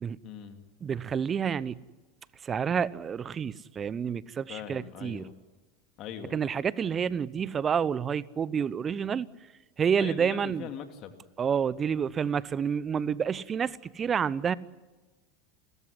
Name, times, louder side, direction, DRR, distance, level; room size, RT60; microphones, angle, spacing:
voice 1, 0.2-0.6 4.5-5.3 6.0-6.4 10.0-11.2, left 9 dB, 50° left, 2.5 m, -41 dB
voice 2, 0.8-1.8 2.4-5.3 6.3-9.3 9.8-10.7 11.4-14.6, right 7 dB, 30° right, 0.8 m, -29 dB
30.0 x 14.0 x 9.9 m
hypercardioid pair, 80°, 0 cm